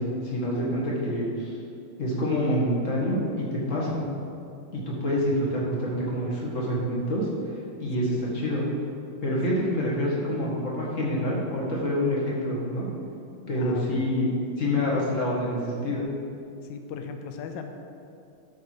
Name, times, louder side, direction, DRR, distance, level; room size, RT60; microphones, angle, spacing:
voice 1, 0.0-1.6 2.0-4.0 4.7-7.3 7.8-8.6 9.2-12.9 13.5-14.3 14.6-16.1, left 1 dB, 35° left, -5 dB, 1.9 m, -27 dB
voice 2, 13.3-14.1 16.7-17.7, left 7 dB, 70° left, 5 dB, 1.2 m, -37 dB
12.0 x 4.7 x 4.7 m, 2.6 s
omnidirectional pair, 2.4 m